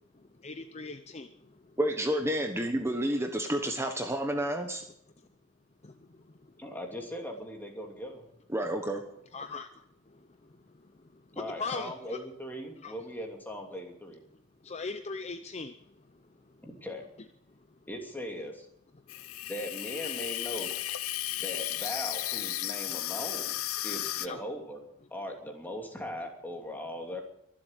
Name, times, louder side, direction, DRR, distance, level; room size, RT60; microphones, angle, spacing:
voice 1, 0.4-1.6 5.8-6.1 9.3-9.7 10.1-10.5 11.1-12.2 12.8-12.9 14.6-15.7 24.3-24.4, left 4 dB, 30° left, 9 dB, 0.7 m, -40 dB
voice 2, 1.8-4.8 8.5-9.0, right 1 dB, 10° right, 4 dB, 1.2 m, -30 dB
voice 3, 6.6-8.3 11.3-14.2 16.6-17.0 17.9-18.7 19.4-20.8 21.4-23.5 23.8-24.8 25.1-27.2, equal, 10° left, 2 dB, 2.8 m, -39 dB
Water tap faucet / Sink (filling or washing), 19.1-24.3, left 14 dB, 85° left, 0.7 m, -34 dB
23.0 x 7.8 x 8.2 m, 0.73 s
head